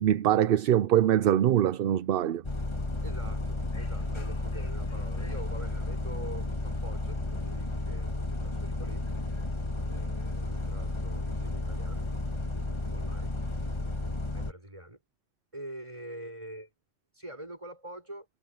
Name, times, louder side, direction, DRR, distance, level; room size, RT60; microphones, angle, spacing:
voice 1, 0.0-2.4, right 11 dB, 65° right, 0.8 m, -23 dB
Bus, 2.4-14.5, left 2 dB, 30° left, 1.6 m, -33 dB
voice 2, 3.0-9.1 9.9-12.1 12.9-13.4 14.3-15.0 15.5-16.7 17.1-18.3, right 1 dB, 30° right, 7.1 m, -45 dB
omnidirectional pair, 1.0 m